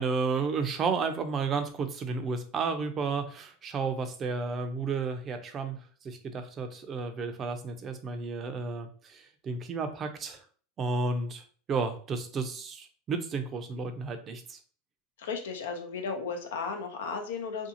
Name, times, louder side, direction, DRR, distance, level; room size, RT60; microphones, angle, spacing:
voice 1, 0.0-10.4 10.8-11.4 11.7-14.6, right 4 dB, 30° right, 8 dB, 0.5 m, -32 dB
voice 2, 15.2-17.7, left 5 dB, 85° left, 4 dB, 0.6 m, -35 dB
2.6 x 2.3 x 2.7 m, 0.43 s
supercardioid pair, 120°, 0 cm